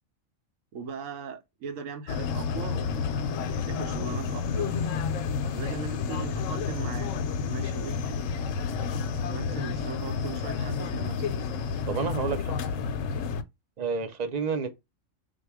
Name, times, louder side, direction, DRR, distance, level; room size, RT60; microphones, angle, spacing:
voice 1, 0.7-3.0 3.7-4.7 5.5-7.1 7.4-8.0 9.3-11.3, right 5 dB, 80° right, 1.1 m, -39 dB
sound 1, 2.1-13.4, left 5 dB, 75° left, 0.9 m, -30 dB
voice 2, 11.9-12.6 13.8-14.7, right 5 dB, 45° right, 0.6 m, -30 dB
4.1 x 2.3 x 4.6 m
omnidirectional pair, 1.4 m